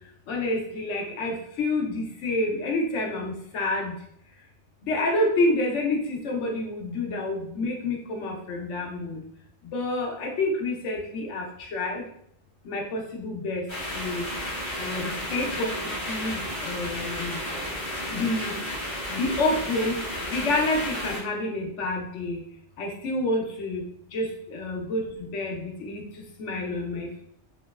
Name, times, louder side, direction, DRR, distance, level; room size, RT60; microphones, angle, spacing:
voice 1, 0.3-3.9 4.8-9.2 9.7-11.4 11.7-12.0 12.7-13.6 13.9-14.3 14.8-15.7 16.1-17.4 18.1-18.5 19.1-20.0 20.3-22.4 22.8-23.8 24.1-25.0 25.3-26.0 26.4-27.2, left 2 dB, 80° left, 1 dB, 1.0 m, -28 dB
sound 1, 13.7-21.2, left 1 dB, 25° left, 1.0 m, -32 dB
2.9 x 2.9 x 2.3 m, 0.67 s
omnidirectional pair, 1.2 m